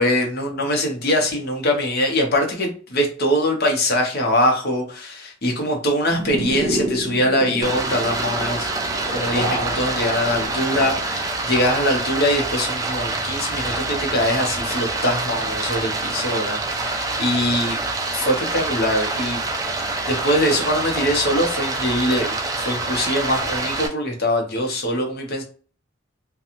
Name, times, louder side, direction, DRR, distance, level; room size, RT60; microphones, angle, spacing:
voice 1, 0.0-8.7 9.1-17.8 18.1-19.4 20.1-22.4 22.6-25.4, left 1 dB, 50° left, 2 dB, 0.8 m, -22 dB
sound 1, 6.1-11.3, right 1 dB, 70° right, 0.8 m, -29 dB
Stream, 7.6-23.9, right 3 dB, 15° right, 0.3 m, -26 dB
2.5 x 2.3 x 2.9 m, 0.41 s
head